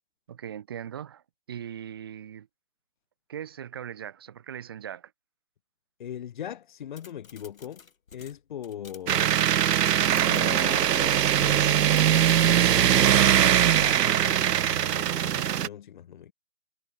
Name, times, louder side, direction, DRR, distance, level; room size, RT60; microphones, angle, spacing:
voice 1, 0.3-1.2 1.5-2.5 3.3-5.1, right 9 dB, 15° right, 1.1 m, -39 dB
voice 2, 6.0-9.4 10.1-16.3, left 10 dB, 30° left, 2.4 m, -40 dB
sound 1, 7.0-12.5, left 6 dB, 55° left, 3.5 m, -49 dB
sound 2, 9.1-15.7, right 10 dB, 75° right, 0.5 m, -21 dB
figure-of-eight pair, 155°, 49 cm